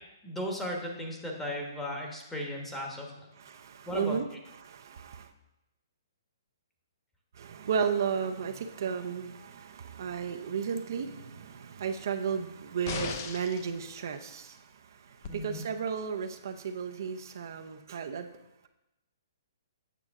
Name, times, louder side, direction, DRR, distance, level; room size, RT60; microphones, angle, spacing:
voice 1, 0.2-3.3 3.9-4.2 15.3-15.6, left 1 dB, 5° left, 0 dB, 1.1 m, -36 dB
voice 2, 3.4-5.3 7.3-18.3, right 6 dB, 60° right, 6 dB, 0.6 m, -34 dB
sound 1, 12.8-13.7 15.2-15.3, left 6 dB, 40° left, 0.7 m, -36 dB
8.3 x 6.0 x 3.6 m, 0.93 s
hypercardioid pair, 155°, 2 cm